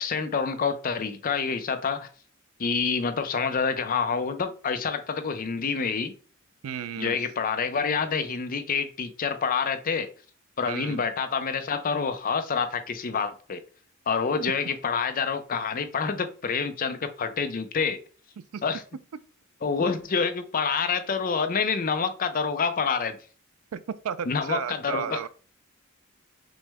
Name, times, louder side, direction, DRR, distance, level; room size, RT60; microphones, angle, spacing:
voice 1, 0.0-2.1 2.6-6.1 7.0-10.1 10.6-13.6 14.1-18.0 18.6-18.8 19.6-23.2 24.3-25.2, left 5 dB, 40° left, 0.5 m, -27 dB
voice 2, 6.6-7.2 10.7-11.0 18.5-18.6 23.7-25.3, right 8 dB, 90° right, 0.4 m, -33 dB
6.1 x 2.1 x 3.4 m
head